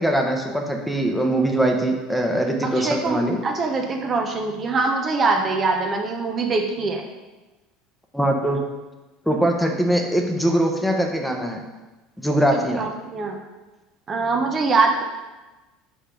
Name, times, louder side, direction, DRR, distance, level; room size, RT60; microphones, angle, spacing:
voice 1, 0.0-3.4 8.1-8.6 9.3-11.6 12.2-12.8, right 1 dB, ahead, 2 dB, 0.9 m, -22 dB
voice 2, 2.6-7.0 12.5-13.4 14.1-15.0, right 3 dB, 35° right, 3 dB, 0.8 m, -23 dB
5.1 x 4.3 x 5.1 m, 1.1 s
hypercardioid pair, 70°, 0 cm